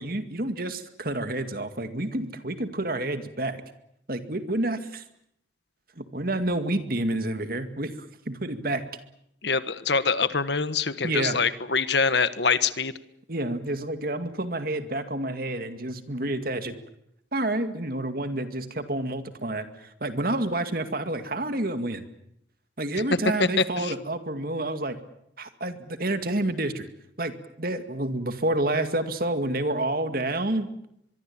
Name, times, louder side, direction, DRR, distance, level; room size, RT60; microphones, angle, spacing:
voice 1, 0.0-3.6 4.1-5.0 6.0-7.9 8.3-8.8 11.0-11.4 13.3-16.8 17.3-22.0 22.8-25.0 25.4-26.9 27.2-30.7, right 1 dB, 50° right, 9 dB, 2.2 m, -29 dB
voice 2, 9.4-12.9 23.6-23.9, left 5 dB, 65° left, 13 dB, 1.3 m, -24 dB
23.5 x 23.5 x 8.7 m, 0.76 s
head